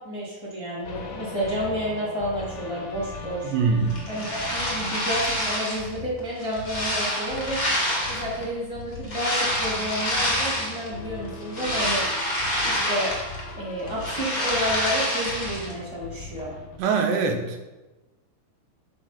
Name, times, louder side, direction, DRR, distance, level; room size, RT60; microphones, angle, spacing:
voice 1, 0.0-3.5 4.1-7.6 8.1-12.0 12.3-13.1 13.6-16.5, equal, 15° left, -7 dB, 1.0 m, -30 dB
sound 1, 0.8-16.8, left 2 dB, 70° left, 2.0 m, -40 dB
voice 2, 3.4-4.0 16.8-17.7, right 5 dB, 75° right, 4 dB, 2.9 m, -23 dB
sound 2, 3.9-5.9 6.4-8.4 9.0-10.9 11.3-13.5 13.8-15.7, equal, 45° left, 1.0 m, -27 dB
9.3 x 5.2 x 5.8 m, 1.1 s
omnidirectional pair, 5.6 m